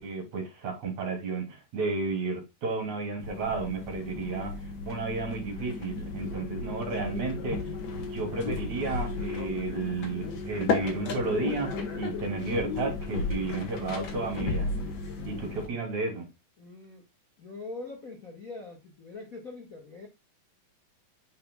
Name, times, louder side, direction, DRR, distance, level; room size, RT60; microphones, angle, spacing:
voice 1, 0.0-4.5 4.9-7.6 7.9-14.7 15.2-16.3, right 3 dB, 50° right, 4.2 m, -32 dB
sound 1, 3.2-15.7, left 4 dB, 50° left, 2.2 m, -34 dB
voice 2, 16.6-17.1 17.4-20.1, left 3 dB, 80° left, 0.7 m, -42 dB
8.9 x 5.6 x 2.3 m
omnidirectional pair, 4.4 m